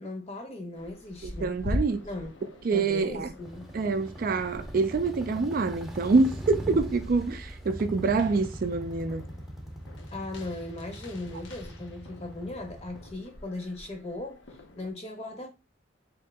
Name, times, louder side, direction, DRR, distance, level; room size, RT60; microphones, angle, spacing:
voice 1, 0.0-1.5 2.0-2.3 2.7-3.7 10.1-14.5 14.8-15.5, left 2 dB, 30° left, 0.9 m, -38 dB
sound 1, 0.7-14.9, left 1 dB, 65° left, 0.7 m, -42 dB
voice 2, 1.2-2.0 2.6-3.3 3.7-9.2, right 4 dB, 45° right, 0.4 m, -26 dB
sound 2, 3.5-13.1, equal, ahead, 0.6 m, -40 dB
3.5 x 2.9 x 3.4 m
head